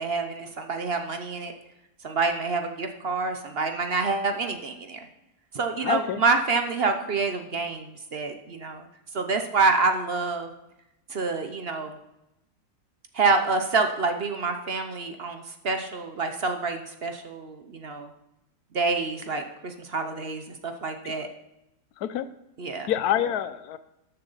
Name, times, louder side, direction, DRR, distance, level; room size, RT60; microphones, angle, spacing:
voice 1, 0.0-1.5 2.0-5.0 5.5-8.9 9.1-10.5 11.1-12.0 13.1-18.1 18.7-21.3 22.6-22.9, right 4 dB, 50° right, 6 dB, 0.9 m, -27 dB
voice 2, 5.8-6.2 21.0-21.3 22.0-22.3 22.9-23.8, left 11 dB, 85° left, 13 dB, 1.2 m, -27 dB
13.0 x 6.8 x 4.0 m, 0.87 s
omnidirectional pair, 1.6 m